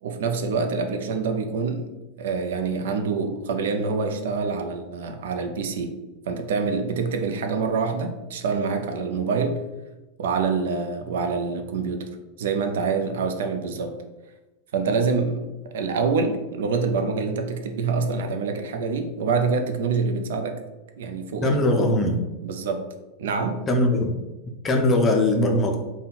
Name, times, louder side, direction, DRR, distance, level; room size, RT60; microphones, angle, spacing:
voice 1, 0.0-6.0 6.3-9.7 10.2-12.1 12.4-14.0 14.7-20.6 21.0-21.6 22.4-22.9 23.2-23.7, right 4 dB, 80° right, 0.5 m, -26 dB
voice 2, 21.4-22.2 23.7-24.2 24.6-25.8, left 1 dB, 20° left, 0.4 m, -20 dB
4.0 x 2.2 x 4.0 m
supercardioid pair, 160°, 0 cm